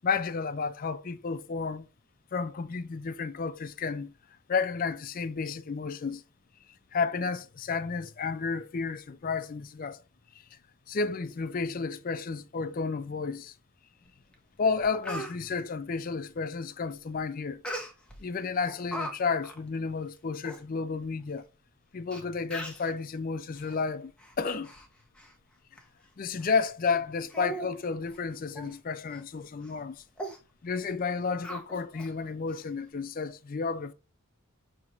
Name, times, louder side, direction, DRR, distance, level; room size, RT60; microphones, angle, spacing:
voice 1, 0.0-1.9 2.3-4.1 4.5-6.2 6.9-10.0 10.5-10.6 10.9-13.5 14.6-17.6 18.2-21.4 21.9-24.1 24.4-24.7 26.2-30.0 30.6-33.9, left 4 dB, 40° left, 0.4 m, -32 dB
Speech, 14.3-14.4 14.8-15.3 17.6-18.2 18.6-19.1 19.4-19.6 20.2-20.3 20.4-20.6 21.4-21.5 22.1-22.2 22.5-22.9 23.5-23.7 24.2-24.9 25.2-25.3 25.8-25.9 26.4-26.5 26.9-27.0 27.3-27.7 28.0-28.2 28.5-28.7 29.1-29.2 29.6-29.8 30.2-30.4 31.4-32.1 32.5-32.6, right 1 dB, 5° left, 0.7 m, -39 dB
5.6 x 2.9 x 2.6 m
head